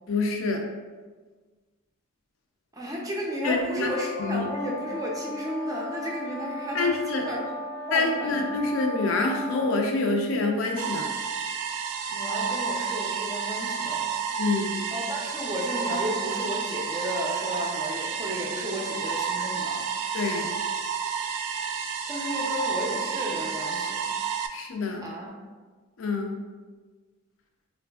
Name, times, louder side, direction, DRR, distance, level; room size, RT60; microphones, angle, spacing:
voice 1, 0.1-0.6 3.4-3.9 4.2-4.5 6.7-7.2 7.9-11.1 14.4-14.8 20.1-20.6 24.5-25.1 26.0-26.4, left 3 dB, 60° left, 2 dB, 0.4 m, -26 dB
voice 2, 2.7-7.4 7.9-8.5 12.1-14.1 14.9-19.9 22.1-24.1 25.0-25.3, equal, 15° right, -2 dB, 0.4 m, -33 dB
sound 1, 3.7-9.9, left 1 dB, 90° left, 0.9 m, -36 dB
sound 2, 10.8-24.5, right 6 dB, 85° right, 0.3 m, -30 dB
3.9 x 2.5 x 2.2 m, 1.4 s
head